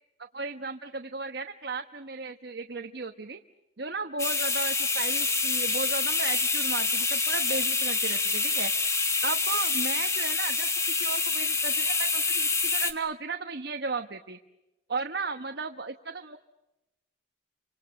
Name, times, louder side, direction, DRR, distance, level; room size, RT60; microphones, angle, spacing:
voice 1, 0.2-3.4 3.8-8.7 9.2-10.7 11.0-14.4 14.9-16.4, right 4 dB, 65° right, 6 dB, 1.2 m, -35 dB
sound 1, 4.2-12.9, left 4 dB, 15° left, 1.6 m, -27 dB
29.5 x 26.5 x 6.5 m, 0.96 s
head